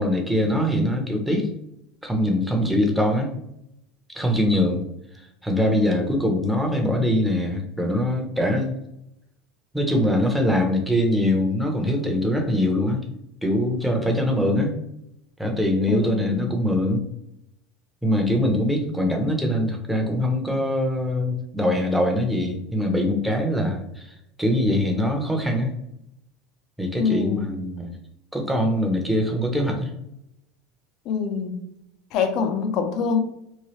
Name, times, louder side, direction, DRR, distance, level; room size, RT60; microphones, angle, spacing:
voice 1, 0.0-1.5 2.0-3.3 4.2-4.8 5.4-8.8 9.7-13.0 13.4-14.7 15.4-17.0 18.0-24.1 24.4-25.7 26.8-27.9 28.3-29.9, left 1 dB, ahead, 1 dB, 0.6 m, -23 dB
voice 2, 15.9-16.5 27.0-27.5 31.1-31.6 32.1-33.2, left 6 dB, 55° left, 6 dB, 0.5 m, -25 dB
3.0 x 2.2 x 2.9 m, 0.78 s
supercardioid pair, 130°, 0 cm